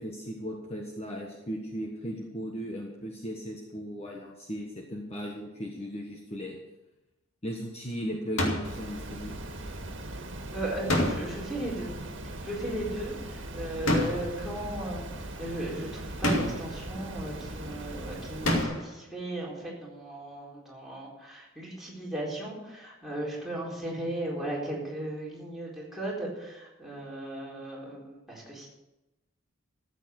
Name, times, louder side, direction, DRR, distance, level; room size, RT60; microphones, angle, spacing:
voice 1, 0.0-6.6 7.4-9.3, equal, 30° left, 0 dB, 1.4 m, -37 dB
sound 1, 8.4-8.8 10.9-11.5 13.9-14.4 16.2-16.8 18.4-19.0, left 1 dB, 80° left, 2.4 m, -27 dB
Water, 8.6-18.6, right 1 dB, 60° right, 1.8 m, -40 dB
voice 2, 10.5-11.9 12.2-15.0 15.4-28.7, right 1 dB, ahead, -6 dB, 4.2 m, -36 dB
13.5 x 8.2 x 6.5 m, 0.99 s
head